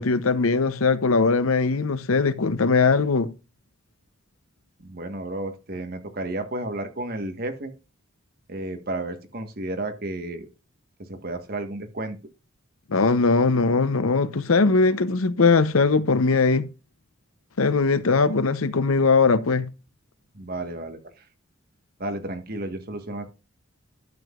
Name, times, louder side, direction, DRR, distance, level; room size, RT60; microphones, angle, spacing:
voice 1, 0.0-3.3 12.9-16.7 17.6-19.7, left 4 dB, 90° left, 0.8 m, -20 dB
voice 2, 4.8-7.7 8.5-10.5 11.1-12.2 20.3-21.0 22.0-23.3, right 2 dB, 45° right, 1.4 m, -32 dB
12.0 x 7.7 x 2.4 m
head